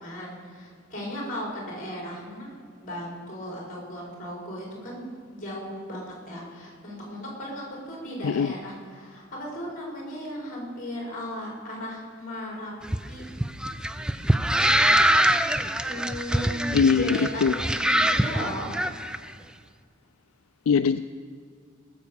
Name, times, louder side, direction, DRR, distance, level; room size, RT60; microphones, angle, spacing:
voice 1, 0.0-2.5 2.8-5.0 5.3-12.7 13.1-13.2 15.8-18.7, equal, 40° left, -2 dB, 4.7 m, -36 dB
sound 1, 12.8-19.2, right 1 dB, 5° right, 0.4 m, -24 dB
voice 2, 16.7-17.5 20.7-21.1, left 6 dB, 75° left, 11 dB, 0.4 m, -21 dB
20.0 x 7.0 x 6.9 m, 2.2 s
head